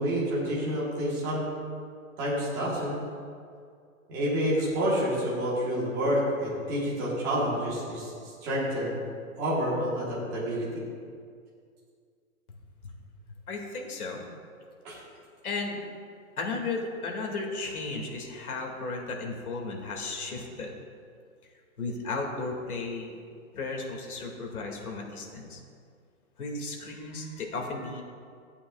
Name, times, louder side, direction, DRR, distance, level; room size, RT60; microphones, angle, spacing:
voice 1, 0.0-1.5 2.2-3.0 4.1-8.1 8.4-8.9 9.4-10.8 14.8-15.0, equal, 10° right, -8 dB, 1.2 m, -28 dB
voice 2, 13.5-14.2 15.4-15.8 16.4-20.7 21.8-23.2 23.5-25.6 26.4-28.0, left 3 dB, 85° left, 0 dB, 2.3 m, -34 dB
15.0 x 8.6 x 2.4 m, 2.2 s
hypercardioid pair, 180°, 43 cm